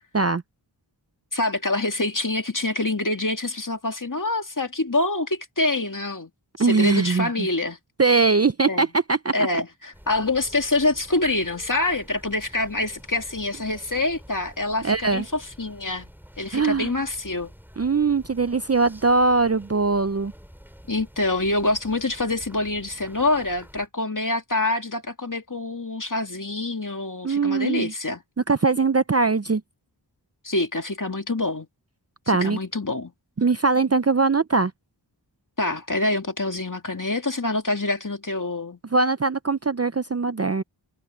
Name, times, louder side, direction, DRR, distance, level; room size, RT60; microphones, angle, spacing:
voice 1, 1.3-6.3 6.6-7.8 8.7-8.9 9.3-16.1 16.4-17.5 20.9-28.2 30.4-31.7 32.4-33.1 35.6-38.8, left 2 dB, 45° left, 2.3 m, -26 dB
voice 2, 6.6-7.5 8.0-9.3 14.8-15.2 16.5-16.9 17.8-20.3 27.2-27.9 28.5-29.6 32.3-32.6 33.4-34.7 38.9-40.6, right 4 dB, 35° right, 0.5 m, -21 dB
sound 1, 9.9-23.9, equal, 5° right, 4.1 m, -48 dB
wide cardioid pair, 50°, 45 cm